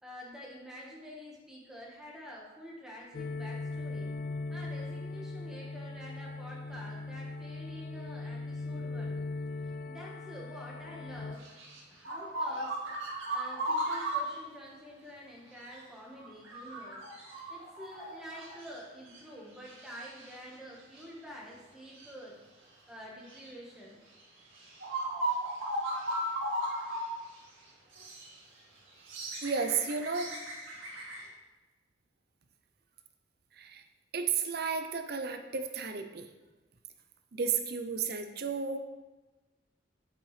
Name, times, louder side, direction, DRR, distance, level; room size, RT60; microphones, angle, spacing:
voice 1, 0.0-4.1 4.5-9.2 9.6-12.7 13.3-17.0 17.5-22.4 22.9-24.0, equal, 5° right, -4 dB, 1.4 m, -48 dB
sound 1, 3.1-11.4, left 3 dB, 45° left, 0.3 m, -39 dB
sound 2, 11.4-14.3 15.7-15.8 16.1-18.8 19.1-19.2 19.6-20.3 20.9-21.0 21.9-22.1 23.3-23.5 24.2-24.3 24.6-27.1 27.4-27.5 27.9-28.3 28.9-31.2, right 1 dB, 80° right, 2.0 m, -36 dB
voice 2, 29.4-30.4 33.5-33.8 34.1-36.3 37.3-38.8, right 5 dB, 50° right, 7 dB, 0.6 m, -33 dB
8.2 x 6.8 x 3.3 m, 1.2 s
head